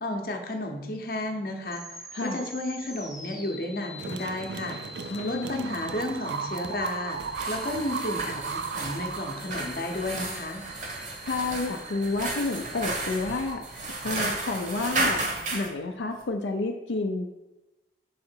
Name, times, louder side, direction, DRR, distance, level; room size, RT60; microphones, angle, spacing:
voice 1, 0.0-1.8 2.2-4.8 5.2-10.6, left 1 dB, 55° left, 3 dB, 0.8 m, -32 dB
sound 1, 1.6-15.3, left 1 dB, ahead, 0.5 m, -47 dB
voice 2, 2.1-2.4 5.1-5.7 11.0-15.2 15.5-17.3, left 3 dB, 90° left, 3 dB, 0.5 m, -30 dB
sound 2, 4.0-10.0, right 5 dB, 75° right, 0.3 m, -36 dB
sound 3, 7.2-15.7, right 2 dB, 45° right, 0.9 m, -33 dB
5.7 x 3.8 x 4.4 m, 1.0 s
head